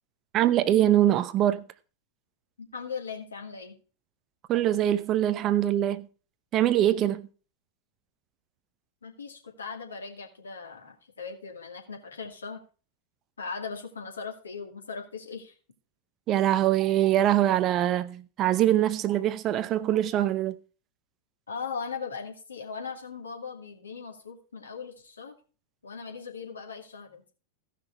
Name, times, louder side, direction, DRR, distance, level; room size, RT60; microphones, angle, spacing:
voice 1, 0.3-1.7 4.5-6.1 6.5-7.3 16.3-20.6, right 12 dB, 35° right, 0.6 m, -23 dB
voice 2, 2.6-3.8 9.0-12.6 13.4-15.5 21.5-25.3 25.8-27.3, left 5 dB, 75° left, 2.4 m, -39 dB
15.5 x 5.9 x 4.5 m
figure-of-eight pair, 90°, 0 cm